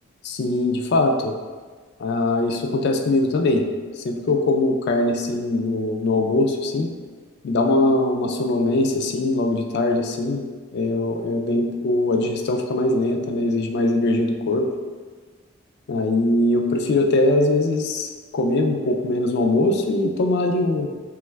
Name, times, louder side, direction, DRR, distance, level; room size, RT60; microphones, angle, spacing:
voice 1, 0.2-1.3 2.0-3.7 4.0-6.9 7.4-10.4 10.7-14.7 15.9-20.9, left 2 dB, 55° left, 3 dB, 0.3 m, -21 dB
3.0 x 2.3 x 3.2 m, 1.5 s
head